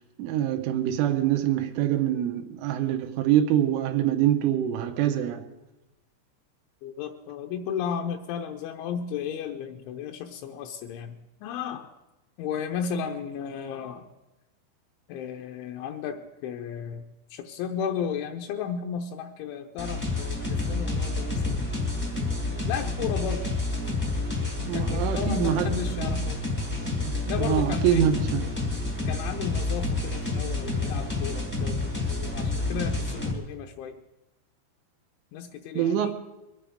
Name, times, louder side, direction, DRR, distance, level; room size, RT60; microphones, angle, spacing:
voice 1, 0.2-5.5 24.7-26.3 27.1-28.4 35.8-36.1, right 11 dB, 90° right, 3.5 m, -25 dB
voice 2, 6.8-11.9 12.4-14.1 15.1-21.6 22.7-23.6 24.7-26.5 27.3-28.1 29.1-34.0 35.3-36.1, left 7 dB, 80° left, 3.0 m, -34 dB
sound 1, 19.8-33.3, left 2 dB, 10° left, 0.6 m, -29 dB
23.0 x 9.2 x 5.0 m
omnidirectional pair, 5.6 m